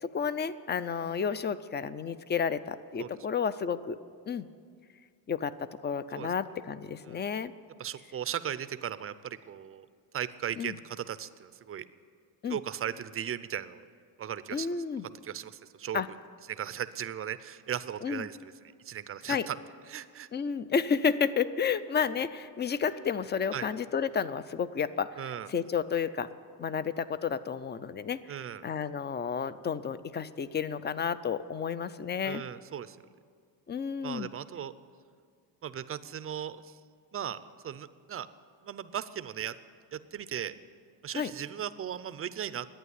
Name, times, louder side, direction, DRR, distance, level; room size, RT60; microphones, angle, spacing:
voice 1, 0.0-4.0 4.3-4.5 5.3-7.5 10.6-10.8 12.4-12.6 14.5-15.1 15.9-16.1 18.0-18.3 19.3-19.5 20.3-26.3 26.6-28.3 28.6-32.4 33.7-34.3 41.1-41.3, left 6 dB, 25° left, 15 dB, 0.4 m, -31 dB
voice 2, 7.8-9.9 10.1-11.8 12.5-13.8 14.2-14.7 15.2-16.0 16.5-18.5 18.9-19.6 19.9-20.3 23.5-23.7 25.2-25.5 28.3-28.6 32.2-33.0 34.0-34.7 35.6-36.8 37.1-37.4 37.6-38.3 38.6-39.5 39.9-40.6 41.0-42.7, right 9 dB, 30° right, 14 dB, 0.5 m, -37 dB
11.0 x 9.0 x 9.6 m, 2.1 s
cardioid pair, 95°, 45 cm